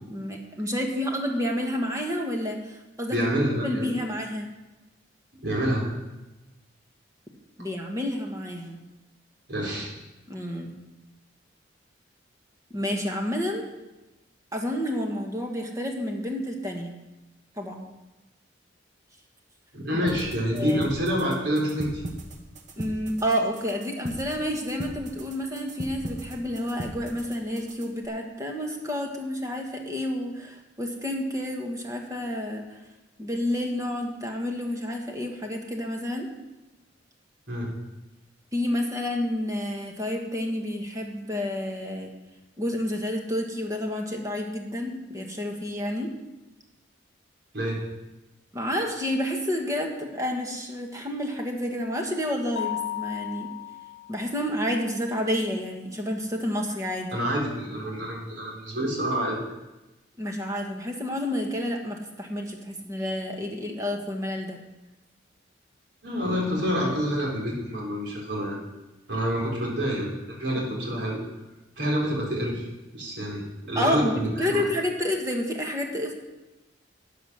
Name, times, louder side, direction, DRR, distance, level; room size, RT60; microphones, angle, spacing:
voice 1, 0.1-3.2 3.6-4.4 7.6-8.8 10.3-10.7 12.7-13.6 14.5-16.9 17.6-17.9 20.5-20.9 22.8-32.8 33.2-36.3 38.5-42.1 42.6-46.1 48.5-53.5 54.1-57.2 60.2-64.6 73.7-76.1, left 1 dB, 15° right, 1 dB, 1.4 m, -29 dB
voice 2, 3.1-4.0 5.4-5.9 9.5-9.9 19.7-22.0 37.5-37.7 47.5-47.8 57.1-59.4 66.0-68.6 69.1-71.2 71.8-72.7 72.9-74.6, equal, 70° right, -3 dB, 4.0 m, -27 dB
sound 1, 20.1-28.0, right 1 dB, 40° right, 1.2 m, -39 dB
Mallet percussion, 52.6-54.3, left 13 dB, 65° left, 0.5 m, -34 dB
13.0 x 8.3 x 6.3 m, 1.0 s
head